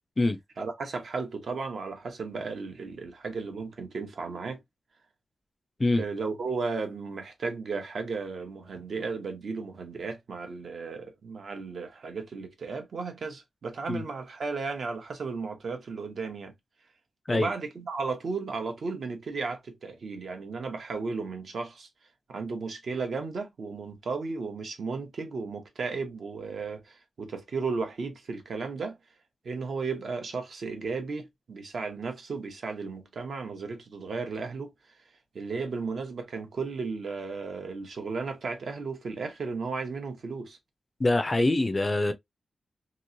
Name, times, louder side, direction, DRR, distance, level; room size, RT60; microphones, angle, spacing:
voice 1, 0.6-4.6 6.0-16.5 17.3-21.9 22.3-29.0 29.4-34.7 35.3-40.6, right 4 dB, 60° right, 0.8 m, -34 dB
voice 2, 41.0-42.1, left 2 dB, 25° left, 0.4 m, -24 dB
3.0 x 2.9 x 2.5 m
wide cardioid pair, 170°, 0 cm